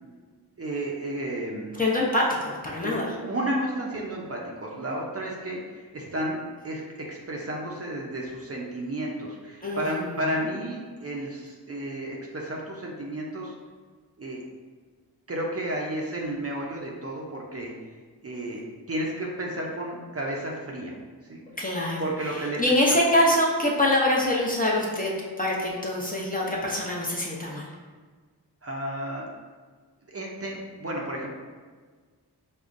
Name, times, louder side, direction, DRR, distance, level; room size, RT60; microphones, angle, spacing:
voice 1, 0.6-1.8 2.8-6.4 6.6-13.5 14.2-14.4 15.3-17.7 18.2-20.9 21.3-21.4 22.0-22.6 28.6-29.3 30.1-31.3, right 1 dB, 35° right, -2 dB, 0.6 m, -32 dB
voice 2, 1.7-3.1 9.6-10.1 21.6-25.1 25.4-27.7, left 1 dB, 20° left, -4 dB, 0.7 m, -25 dB
5.1 x 2.1 x 2.5 m, 1.5 s
cardioid pair, 50°, 41 cm